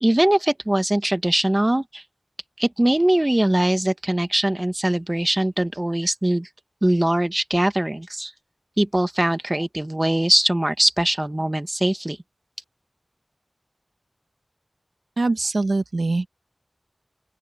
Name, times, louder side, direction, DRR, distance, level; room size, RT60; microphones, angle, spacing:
voice 1, 0.0-2.0 2.6-6.5 6.8-8.3 8.8-12.2, right 1 dB, 25° right, 1.3 m, -21 dB
voice 2, 15.2-16.3, right 2 dB, 80° right, 1.3 m, -23 dB
open air
wide cardioid pair, 40°, 0 cm